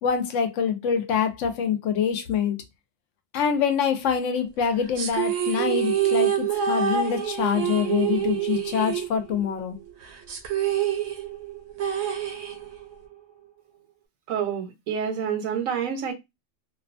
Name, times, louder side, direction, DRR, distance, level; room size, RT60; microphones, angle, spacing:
voice 1, 0.0-2.6 3.3-9.8, left 7 dB, 70° left, 0.9 m, -25 dB
sound 1, 5.0-9.6 9.9-10.0 10.3-12.9, right 9 dB, 65° right, 0.8 m, -26 dB
voice 2, 14.3-16.1, right 7 dB, 90° right, 1.2 m, -28 dB
2.6 x 2.2 x 2.5 m
omnidirectional pair, 1.4 m